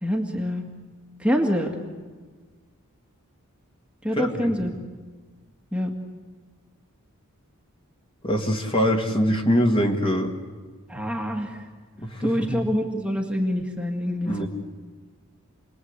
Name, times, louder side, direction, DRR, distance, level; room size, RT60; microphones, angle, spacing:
voice 1, 0.0-0.6 1.2-1.8 4.0-4.7 5.7-5.9 10.9-11.6 12.2-14.5, equal, 5° right, 1 dB, 2.1 m, -26 dB
voice 2, 4.1-4.7 8.2-10.3 12.0-12.6 14.3-14.5, equal, 25° left, 2 dB, 2.5 m, -23 dB
29.5 x 21.0 x 8.3 m, 1.4 s
head